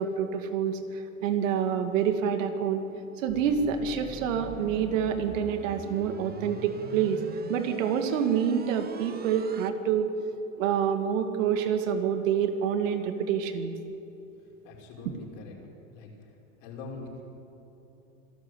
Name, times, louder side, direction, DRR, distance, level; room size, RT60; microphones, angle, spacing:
voice 1, 0.0-2.8 3.2-7.2 7.5-10.1 10.6-13.7, right 8 dB, 65° right, 7 dB, 2.3 m, -27 dB
sound 1, 3.3-9.7, right 5 dB, 20° right, 1.2 m, -43 dB
voice 2, 14.6-15.5 15.9-16.1 16.6-17.3, left 3 dB, 60° left, -1 dB, 5.9 m, -43 dB
26.0 x 13.0 x 8.1 m, 3.0 s
hypercardioid pair, 105°, 41 cm